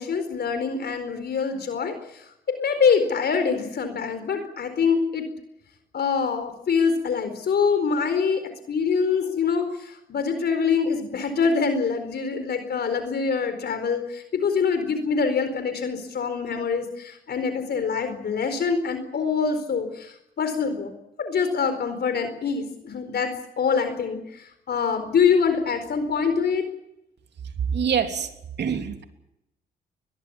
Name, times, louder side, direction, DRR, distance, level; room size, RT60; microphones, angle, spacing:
voice 1, 0.0-2.3 2.6-5.3 5.9-8.4 8.7-20.9 21.2-26.7, left 5 dB, 60° left, 8 dB, 4.4 m, -25 dB
voice 2, 27.7-28.3 28.6-29.0, right 7 dB, 65° right, 6 dB, 3.3 m, -25 dB
22.5 x 22.0 x 7.2 m, 0.84 s
supercardioid pair, 65°, 19 cm